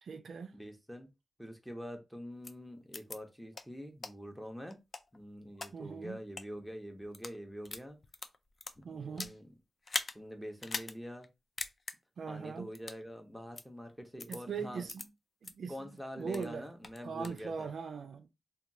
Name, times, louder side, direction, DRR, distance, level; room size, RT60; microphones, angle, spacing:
voice 1, 0.0-0.5 5.7-6.2 8.8-9.4 12.2-12.7 14.3-15.1 15.4-15.7 16.2-16.7 17.0-18.3, right 5 dB, 75° right, 0.4 m, -40 dB
voice 2, 0.5-1.1 1.4-4.8 5.1-8.0 8.8-9.5 10.1-11.3 12.3-14.8 15.7-17.7, equal, ahead, 0.6 m, -45 dB
sound 1, 2.4-2.5 2.9-3.2 3.5-3.6 4.0-4.1 4.7-5.7 6.2-6.4 7.0-7.4 7.6-9.4 9.8-10.1 10.6-10.9 11.2-11.3 11.6-11.9 12.7-13.0 13.5-13.6 14.2-14.4 14.9-15.0 15.4-15.5 16.0-16.5 16.8-17.4, left 3 dB, 40° left, 0.3 m, -40 dB
2.8 x 2.2 x 2.6 m
wide cardioid pair, 125°, 0 cm